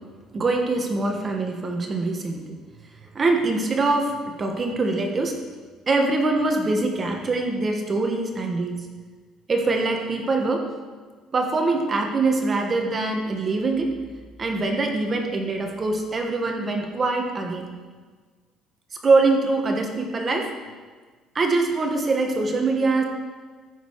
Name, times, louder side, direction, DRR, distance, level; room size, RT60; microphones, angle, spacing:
voice 1, 0.3-2.5 3.0-5.4 5.9-8.9 9.5-10.7 11.3-13.9 14.4-17.7 19.0-20.5 21.3-23.0, right 3 dB, 30° right, 3 dB, 1.4 m, -23 dB
14.0 x 6.7 x 4.7 m, 1.4 s
cardioid pair, 130°, 0 cm